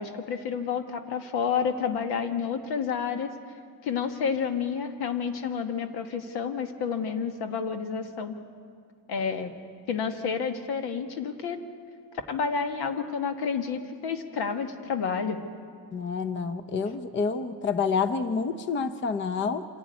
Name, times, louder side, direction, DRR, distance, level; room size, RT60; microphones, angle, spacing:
voice 1, 0.0-3.3 3.8-8.3 9.1-9.5 9.9-11.6 12.3-15.4, left 6 dB, 80° left, 7 dB, 1.6 m, -30 dB
voice 2, 15.9-19.7, left 5 dB, 30° left, 12 dB, 0.6 m, -28 dB
26.5 x 11.5 x 9.5 m, 2.1 s
cardioid pair, 145°, 38 cm